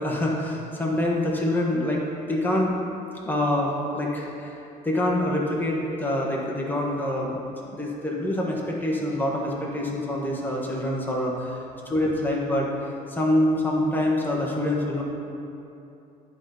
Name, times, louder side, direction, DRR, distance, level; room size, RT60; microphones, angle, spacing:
voice 1, 0.0-2.0 2.3-2.8 3.2-4.6 4.8-7.4 7.7-11.6 11.9-12.7 13.1-15.0, left 1 dB, 10° left, -3 dB, 1.6 m, -25 dB
10.5 x 4.2 x 5.2 m, 2.8 s
cardioid pair, 110°, 17 cm